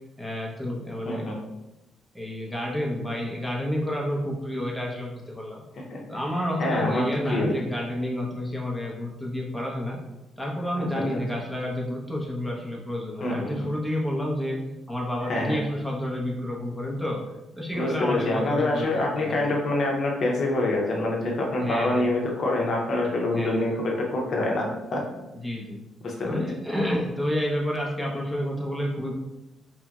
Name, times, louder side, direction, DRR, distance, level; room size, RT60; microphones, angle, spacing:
voice 1, 0.2-1.3 2.1-5.6 6.1-10.0 10.4-17.2 17.5-18.9 19.2-19.5 21.6-22.1 23.3-23.8 25.4-25.8 26.3-29.1, left 1 dB, ahead, -3 dB, 0.6 m, -30 dB
voice 2, 1.0-1.4 5.7-6.0 6.6-7.5 10.8-10.9 13.2-13.7 15.2-15.6 17.7-25.0 26.0-26.4, left 2 dB, 55° left, -1 dB, 0.6 m, -26 dB
2.9 x 2.6 x 2.3 m, 0.97 s
cardioid pair, 90°, 0 cm